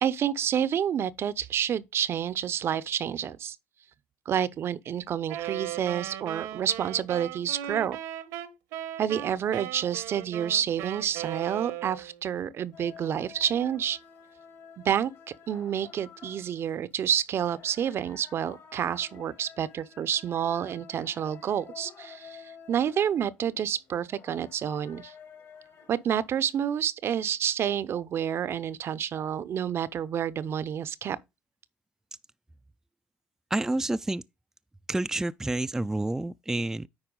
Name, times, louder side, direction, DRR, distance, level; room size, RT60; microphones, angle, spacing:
voice 1, 0.0-3.6 4.3-8.0 9.0-14.0 14.8-15.1 15.5-25.1 25.9-31.2, right 9 dB, 50° right, 0.6 m, -29 dB
Wind instrument woodwind instrument, 5.3-12.2, right 12 dB, 75° right, 1.0 m, -37 dB
sound 1, 12.7-26.6, left 6 dB, 55° left, 2.4 m, -51 dB
voice 2, 33.5-34.2 34.9-36.9, right 2 dB, 10° right, 0.4 m, -29 dB
9.7 x 4.4 x 3.8 m
hypercardioid pair, 70°, 5 cm